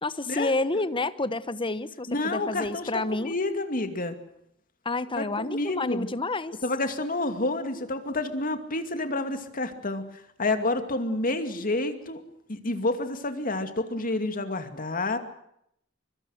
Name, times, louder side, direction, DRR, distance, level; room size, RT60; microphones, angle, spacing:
voice 1, 0.0-3.3 4.8-6.6, left 2 dB, 25° left, 14 dB, 1.1 m, -29 dB
voice 2, 2.1-4.2 5.2-6.1 6.6-10.0 10.4-12.2 12.5-15.2, left 2 dB, 45° left, 8 dB, 2.5 m, -29 dB
24.0 x 23.5 x 6.5 m, 0.74 s
head